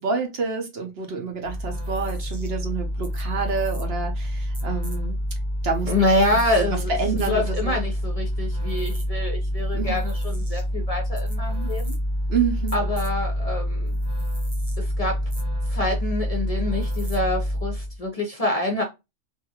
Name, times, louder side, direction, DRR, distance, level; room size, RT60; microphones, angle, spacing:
voice 1, 0.0-5.2 5.6-5.9 6.5-7.8 9.7-10.0 12.3-12.8, right 5 dB, 60° right, 0.9 m, -28 dB
sound 1, 1.4-18.0, equal, 30° right, 0.5 m, -27 dB
voice 2, 5.9-7.0 7.3-11.9 12.7-14.0 14.8-15.2 15.7-18.8, left 1 dB, 40° left, 0.6 m, -26 dB
2.8 x 2.5 x 2.7 m
omnidirectional pair, 1.2 m